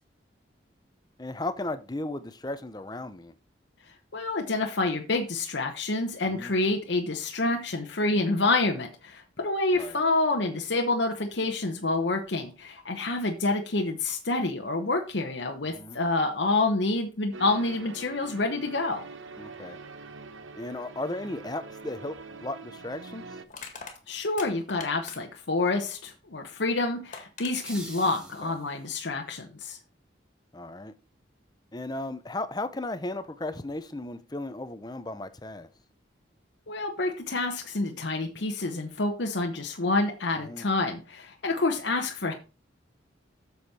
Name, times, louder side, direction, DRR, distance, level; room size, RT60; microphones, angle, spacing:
voice 1, 1.2-3.3 6.3-6.5 9.7-10.0 15.8-16.0 19.4-19.8 20.6-22.2 22.4-23.2 30.5-30.9 31.7-35.7 40.4-40.6, left 2 dB, 20° left, 0.7 m, -35 dB
voice 2, 4.1-19.1 24.1-29.8 36.7-42.3, left 2 dB, 65° left, 1.0 m, -28 dB
sound 1, 17.3-23.4, right 4 dB, 90° right, 0.9 m, -44 dB
Crushing, 22.2-22.3 23.5-25.5 26.7-26.8 27.1-27.5, left 5 dB, 40° left, 1.9 m, -42 dB
sound 2, 27.4-29.0, equal, 5° right, 1.6 m, -45 dB
8.0 x 7.1 x 4.3 m
head